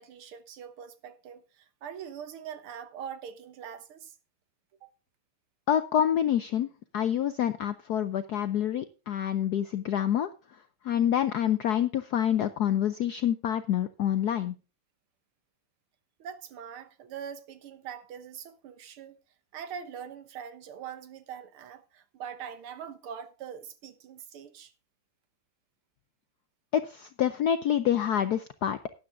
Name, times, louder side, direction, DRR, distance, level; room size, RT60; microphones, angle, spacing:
voice 1, 0.0-4.2 4.8-4.9 16.2-19.2 19.5-24.7, right 8 dB, 75° right, 1.9 m, -43 dB
voice 2, 5.7-6.7 6.9-10.3 10.8-14.6 26.7-28.8, left 10 dB, 75° left, 0.9 m, -27 dB
12.5 x 9.6 x 3.5 m
omnidirectional pair, 2.4 m